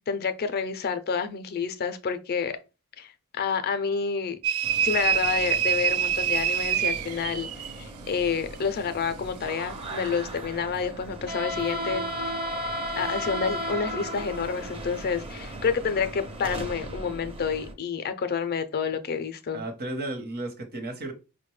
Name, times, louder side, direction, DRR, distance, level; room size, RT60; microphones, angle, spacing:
voice 1, 0.0-2.6 3.0-4.4 4.8-7.5 7.8-12.4 13.0-19.6, left 6 dB, 45° left, 0.4 m, -29 dB
sound 1, 4.4-7.8, right 9 dB, 70° right, 0.4 m, -25 dB
sound 2, 4.6-17.7, right 1 dB, 25° right, 0.5 m, -36 dB
voice 2, 19.5-21.1, right 2 dB, 45° right, 0.8 m, -33 dB
4.9 x 2.2 x 3.1 m
head